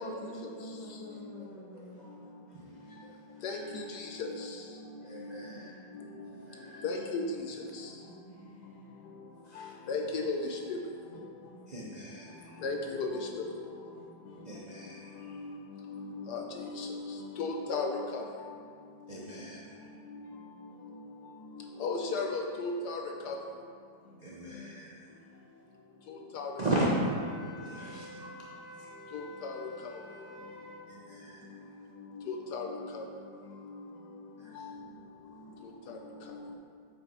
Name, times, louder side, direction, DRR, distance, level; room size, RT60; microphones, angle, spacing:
voice 1, 0.0-2.6 5.5-5.8 6.8-7.2 8.0-8.9 11.1-11.7 13.9-14.6 24.0-24.8 27.8-28.4 33.9-34.0, equal, 25° left, -6 dB, 1.5 m, -49 dB
voice 2, 1.7-2.1 2.5-3.7 5.0-5.7 6.3-6.8 9.4-9.8 11.7-12.6 14.4-15.4 19.1-19.8 24.2-25.2 26.6-26.9 27.6-28.9 30.9-31.5 34.4-34.7, right 2 dB, 45° right, -4 dB, 0.5 m, -39 dB
voice 3, 3.4-4.6 5.1-5.4 6.2-6.3 6.8-7.9 9.6-10.8 12.6-13.5 15.2-18.2 20.1-20.2 21.6-23.4 26.1-26.5 29.1-30.0 32.3-33.1 34.5-34.8 35.9-36.0 36.3-36.6, left 3 dB, 70° left, 2 dB, 1.1 m, -36 dB
Wind instrument woodwind instrument, 26.9-30.8, left 1 dB, 65° right, 1.6 m, -48 dB
8.5 x 5.3 x 4.4 m, 2.2 s
omnidirectional pair, 1.9 m